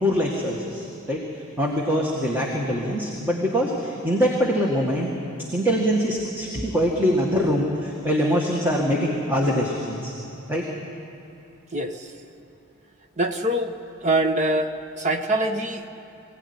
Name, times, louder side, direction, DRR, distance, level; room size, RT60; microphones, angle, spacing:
voice 1, 0.0-1.2 1.6-5.1 5.5-10.1 10.5-10.6, equal, 10° right, -2 dB, 1.9 m, -23 dB
voice 2, 13.2-13.7 14.0-14.7 15.0-15.8, right 1 dB, 35° right, 6 dB, 1.2 m, -23 dB
23.5 x 17.0 x 9.7 m, 3.0 s
head